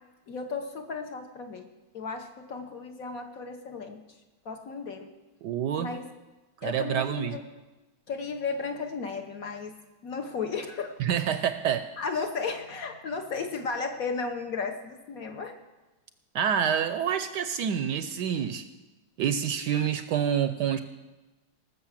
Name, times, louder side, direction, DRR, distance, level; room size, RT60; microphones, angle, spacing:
voice 1, 0.3-1.7 1.9-4.0 4.4-5.1 5.8-6.1 6.6-7.4 8.1-9.8 10.0-11.0 11.4-11.5 12.0-15.5, left 4 dB, 55° left, 5 dB, 1.1 m, -34 dB
voice 2, 5.4-5.9 6.6-7.4 11.0-11.9 16.3-18.6 19.2-20.8, right 8 dB, 70° right, 10 dB, 1.0 m, -27 dB
18.5 x 6.6 x 7.3 m, 1.1 s
omnidirectional pair, 2.2 m